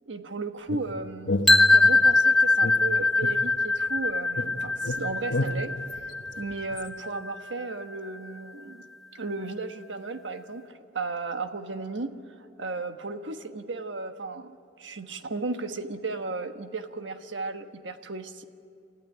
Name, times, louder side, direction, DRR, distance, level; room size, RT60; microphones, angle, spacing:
voice 1, 0.1-1.4 1.7-5.7 6.4-8.8 9.1-14.5 14.8-18.5, right 3 dB, 80° right, 7 dB, 1.3 m, -35 dB
sound 1, 0.7-2.2 2.6-4.0 4.4-6.9, left 1 dB, 85° left, 1.2 m, -32 dB
sound 2, 1.5-7.4, left 3 dB, ahead, 1.0 m, -22 dB
29.5 x 14.5 x 10.0 m, 2.5 s
head